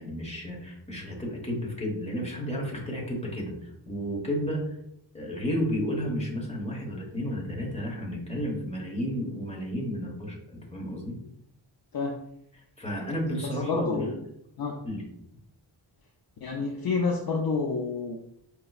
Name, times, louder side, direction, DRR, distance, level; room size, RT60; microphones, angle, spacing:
voice 1, 0.0-4.6 5.1-11.1 12.8-14.1 14.8-15.0, equal, 15° left, -2 dB, 1.2 m, -32 dB
voice 2, 13.4-14.1 14.6-14.8 16.4-18.2, left 4 dB, 55° left, 1 dB, 0.5 m, -29 dB
5.1 x 2.9 x 2.4 m, 0.77 s
wide cardioid pair, 120°, 45 cm